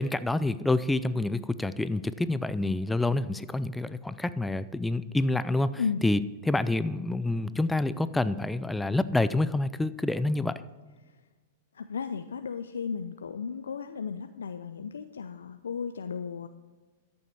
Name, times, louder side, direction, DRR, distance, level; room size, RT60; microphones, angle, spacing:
voice 1, 0.0-6.2 6.4-10.6, left 2 dB, 5° left, 15 dB, 0.5 m, -27 dB
voice 2, 11.7-16.5, left 6 dB, 80° left, 9 dB, 0.4 m, -34 dB
13.5 x 7.0 x 4.7 m, 1.3 s
hypercardioid pair, 105°, 0 cm